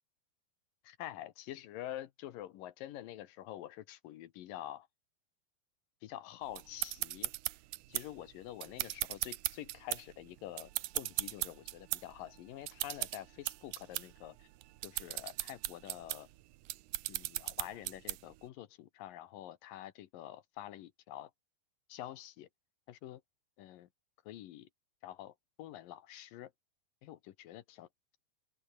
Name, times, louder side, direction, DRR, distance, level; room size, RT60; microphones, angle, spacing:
voice 1, 0.8-4.9 6.0-7.3 7.9-14.5 14.8-16.3 17.1-21.3 21.9-22.5 22.9-23.2 23.6-23.9 24.3-24.7 25.0-26.5 27.0-27.9, left 13 dB, 70° left, 2.4 m, -47 dB
sound 1, 6.5-18.4, right 17 dB, 85° right, 1.8 m, -39 dB
omnidirectional pair, 4.7 m